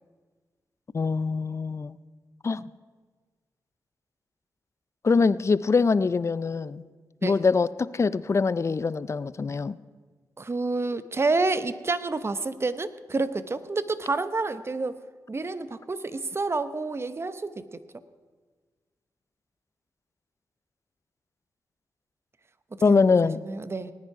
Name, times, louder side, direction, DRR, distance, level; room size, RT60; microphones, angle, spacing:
voice 1, 0.9-2.0 2.4-2.7 5.0-6.8 7.2-9.8 22.8-23.4, left 4 dB, 40° left, 17 dB, 0.5 m, -23 dB
voice 2, 10.4-15.0 15.3-18.0 22.7-23.9, right 3 dB, 40° right, 13 dB, 0.9 m, -29 dB
19.0 x 9.8 x 4.8 m, 1.4 s
supercardioid pair, 45°, 7 cm